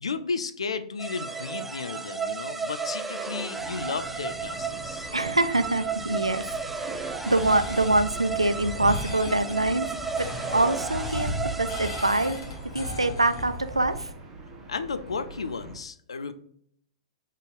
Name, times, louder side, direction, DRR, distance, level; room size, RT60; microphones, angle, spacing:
voice 1, 0.0-5.1 14.7-16.3, left 5 dB, 75° left, 11 dB, 0.4 m, -33 dB
sound 1, 1.0-12.7, right 5 dB, 5° right, 0.4 m, -34 dB
sound 2, 3.6-15.8, right 2 dB, 25° right, 1.3 m, -44 dB
voice 2, 5.1-9.9 10.2-11.3 11.6-12.4 12.7-14.1, right 2 dB, 90° right, 10 dB, 0.4 m, -25 dB
sound 3, 7.2-14.0, left 1 dB, 60° left, 1.6 m, -36 dB
4.0 x 3.6 x 3.4 m, 0.66 s
figure-of-eight pair, 105°, 3 cm